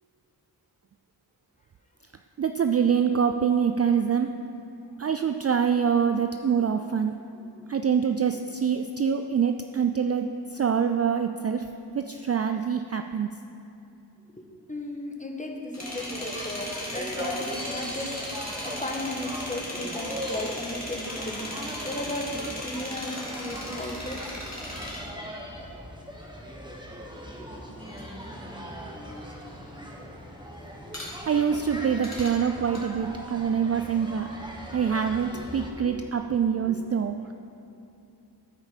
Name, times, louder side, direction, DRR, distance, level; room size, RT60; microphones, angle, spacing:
voice 1, 2.4-4.3 5.0-7.3 7.7-11.7 11.9-13.4 31.2-34.3 34.7-37.3, right 7 dB, 35° right, 7 dB, 0.4 m, -25 dB
voice 2, 14.3-24.2 27.4-27.5 28.9-29.3 29.6-29.9 35.3-35.5 35.8-36.1 36.6-36.8, left 1 dB, 15° left, 1 dB, 1.4 m, -36 dB
sound 1, 15.7-26.5 26.8-32.8, left 1 dB, 40° left, 2.3 m, -38 dB
sound 2, 15.8-35.7, equal, 10° right, 1.3 m, -39 dB
13.0 x 4.8 x 5.0 m, 2.8 s
cardioid pair, 45°, 43 cm